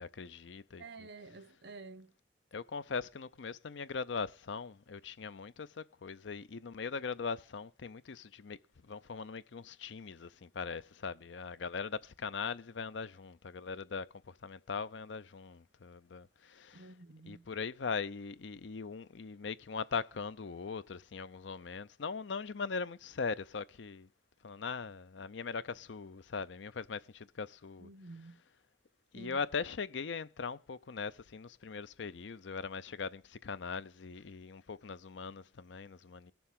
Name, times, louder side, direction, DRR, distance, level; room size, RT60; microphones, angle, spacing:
voice 1, 0.0-0.8 2.5-16.9 17.2-24.1 24.4-27.9 29.1-36.3, left 5 dB, 85° left, 0.6 m, -40 dB
voice 2, 0.8-2.1 16.7-17.5 27.8-28.4 29.1-29.4, right 3 dB, 70° right, 1.0 m, -50 dB
18.0 x 7.0 x 3.7 m
head